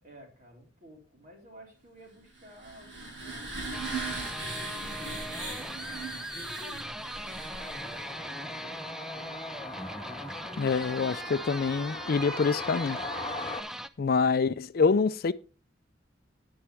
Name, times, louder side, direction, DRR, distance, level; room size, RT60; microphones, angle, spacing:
voice 1, 0.0-10.3, equal, 50° right, 4.2 m, -53 dB
sound 1, 2.3-8.2, right 2 dB, 75° right, 6.2 m, -39 dB
sound 2, 3.7-13.9, equal, 5° right, 0.5 m, -40 dB
sound 3, 7.5-13.6, left 2 dB, 25° left, 1.5 m, -40 dB
voice 2, 10.6-13.0 14.0-15.3, left 5 dB, 55° left, 0.4 m, -26 dB
10.0 x 10.0 x 3.4 m
head